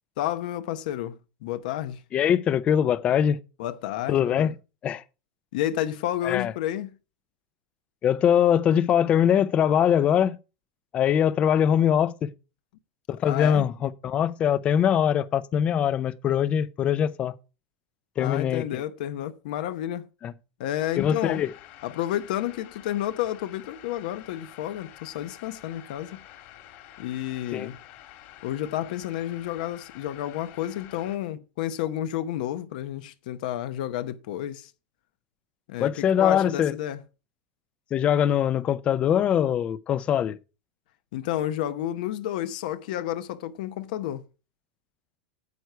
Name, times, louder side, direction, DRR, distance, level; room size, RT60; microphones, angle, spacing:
voice 1, 0.2-2.0 3.6-4.5 5.5-6.9 13.2-13.7 18.2-20.1 20.6-21.4 21.8-26.2 27.0-27.8 28.4-34.7 35.7-37.0 41.1-44.2, left 12 dB, 65° left, 0.9 m, -31 dB
voice 2, 2.1-3.4 4.1-4.5 4.8-5.0 6.2-6.5 8.0-10.4 10.9-12.3 13.1-17.3 18.2-18.8 20.2-20.3 21.0-21.5 27.5-27.7 35.8-36.7 37.9-40.4, left 9 dB, 25° left, 0.6 m, -22 dB
sound 1, 20.8-31.2, left 13 dB, 45° left, 2.1 m, -49 dB
9.4 x 8.1 x 4.5 m
supercardioid pair, 160°, 5 cm